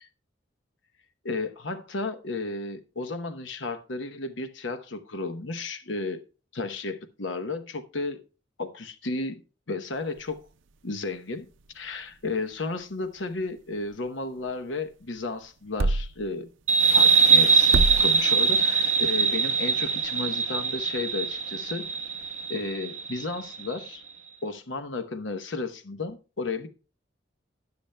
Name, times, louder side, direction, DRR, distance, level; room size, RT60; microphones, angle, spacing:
voice 1, 1.2-6.2 6.5-8.2 8.6-9.4 9.7-10.4 10.8-11.5 11.7-16.5 16.9-21.9 22.5-24.0 24.4-26.7, left 3 dB, 75° left, 9 dB, 0.9 m, -33 dB
sound 1, 9.9-22.7, right 2 dB, 75° right, 0.5 m, -36 dB
sound 2, 16.7-23.9, right 5 dB, 40° right, 1.0 m, -22 dB
20.5 x 7.0 x 2.2 m, 0.34 s
head